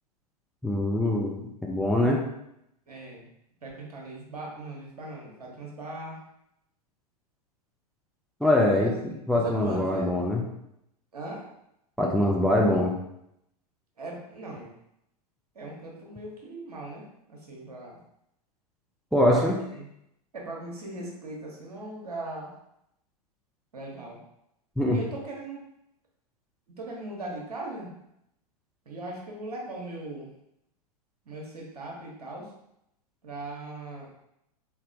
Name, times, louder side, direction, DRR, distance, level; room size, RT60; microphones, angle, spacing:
voice 1, 0.6-1.4 1.7-2.2 8.4-8.9 9.3-10.4 12.0-12.9 19.1-19.6 24.8-25.0, left 1 dB, ahead, -1 dB, 0.4 m, -23 dB
voice 2, 2.9-3.3 3.6-6.2 8.7-10.1 11.1-11.4 14.0-14.7 15.5-18.0 19.3-19.9 20.3-22.5 23.7-24.2 24.9-25.6 26.7-27.9 28.8-30.3 31.3-32.5 33.2-34.1, right 2 dB, 70° right, -2 dB, 1.2 m, -39 dB
4.1 x 3.3 x 2.6 m, 0.78 s
figure-of-eight pair, 95°, 20 cm